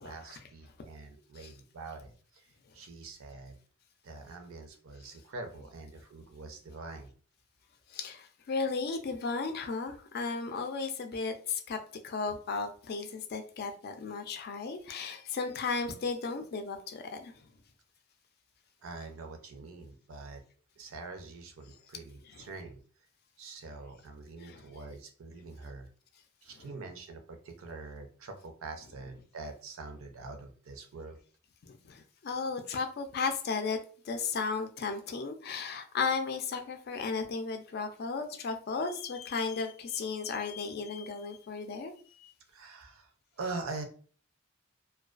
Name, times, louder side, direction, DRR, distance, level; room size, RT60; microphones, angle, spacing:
voice 1, 0.0-3.6 4.0-7.1 18.8-20.4 20.8-23.1 23.4-25.9 26.4-31.2 42.5-43.8, right 3 dB, 80° right, 0.5 m, -44 dB
voice 2, 7.9-11.8 12.0-17.3 22.3-22.4 24.5-24.6 31.6-33.8 34.1-41.9, left 4 dB, 50° left, 0.4 m, -35 dB
2.3 x 2.2 x 2.4 m
head